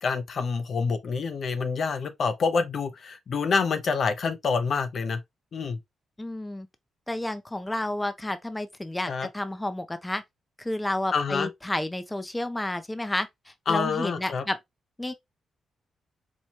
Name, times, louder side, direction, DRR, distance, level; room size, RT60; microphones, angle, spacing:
voice 1, 0.0-5.2 5.5-5.8 9.1-9.3 11.1-11.5 13.7-14.4, left 5 dB, 60° left, 0.6 m, -27 dB
voice 2, 6.2-6.7 7.1-10.2 10.6-14.6 15.0-15.1, left 1 dB, 10° left, 0.5 m, -31 dB
4.4 x 2.2 x 2.8 m
cardioid pair, 75°, 0 cm